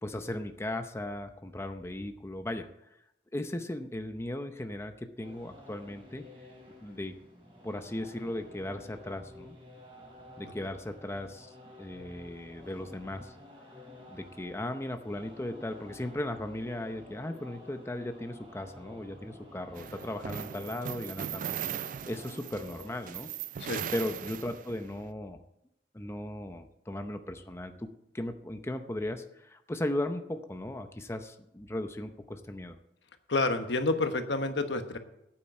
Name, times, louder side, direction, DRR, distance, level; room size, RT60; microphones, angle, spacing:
voice 1, 0.0-2.7 3.3-6.2 6.8-7.1 7.6-9.6 10.4-13.3 14.1-21.5 21.8-23.3 23.9-25.4 25.9-32.8, left 1 dB, 15° left, 7 dB, 0.7 m, -37 dB
sound 1, 5.2-22.9, left 1 dB, 30° right, 3.7 m, -52 dB
sound 2, 19.8-24.9, right 9 dB, 50° right, 0.3 m, -39 dB
voice 2, 33.3-35.0, left 2 dB, 80° left, 7 dB, 1.2 m, -29 dB
9.1 x 8.7 x 7.5 m, 0.82 s
head